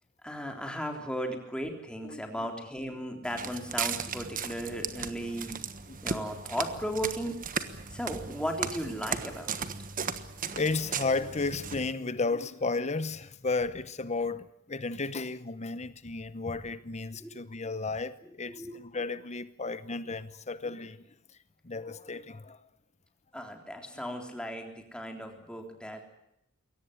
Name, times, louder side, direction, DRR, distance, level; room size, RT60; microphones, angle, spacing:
voice 1, 0.2-5.6 6.0-7.3 7.9-9.6 17.2-17.3 18.5-18.7 23.3-26.1, equal, 5° left, 3.6 m, -36 dB
voice 2, 2.0-2.5 2.9-3.0 5.9-6.0 10.5-21.0 21.6-22.6, left 3 dB, 35° left, 0.9 m, -33 dB
Walk footsteps, 3.2-11.9, right 6 dB, 40° right, 1.4 m, -36 dB
22.5 x 18.0 x 9.9 m
head